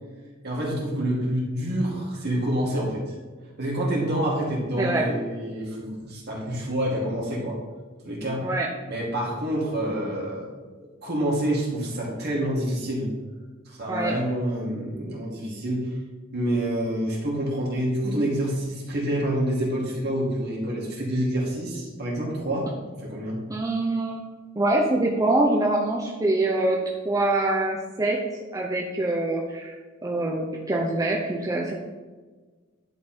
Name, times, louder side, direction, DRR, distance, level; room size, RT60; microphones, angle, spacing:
voice 1, 0.4-3.0 3.6-7.6 8.0-8.5 8.9-10.5 10.8-13.1 13.7-15.9 16.3-23.4, right 1 dB, 55° right, -3 dB, 2.2 m, -27 dB
voice 2, 4.8-5.1 8.4-8.7 13.9-14.1 23.5-24.3 24.6-26.8 27.0-28.2 28.5-29.7 30.0-31.7, right 2 dB, 15° right, -2 dB, 0.6 m, -24 dB
10.5 x 3.6 x 4.4 m, 1.4 s
head